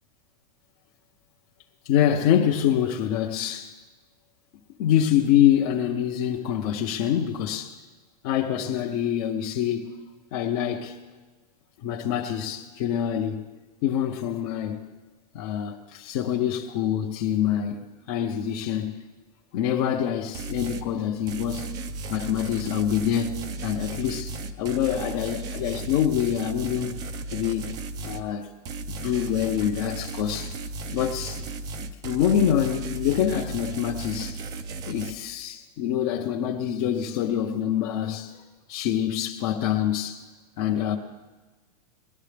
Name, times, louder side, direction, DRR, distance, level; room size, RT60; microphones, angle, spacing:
voice 1, 1.8-3.7 4.8-7.8 8.2-10.0 10.3-11.0 11.8-13.4 13.8-14.8 15.3-19.0 19.5-21.7 22.1-27.0 27.3-27.7 28.0-28.5 28.9-30.6 30.9-31.4 32.0-34.4 34.9-38.4 38.7-40.2 40.6-41.0, left 10 dB, 40° left, 0.7 m, -25 dB
sound 1, 20.3-20.9 21.3-28.3 28.7-35.1, right 3 dB, 20° right, 0.4 m, -35 dB
19.5 x 11.5 x 3.4 m
supercardioid pair, 165°, 20 cm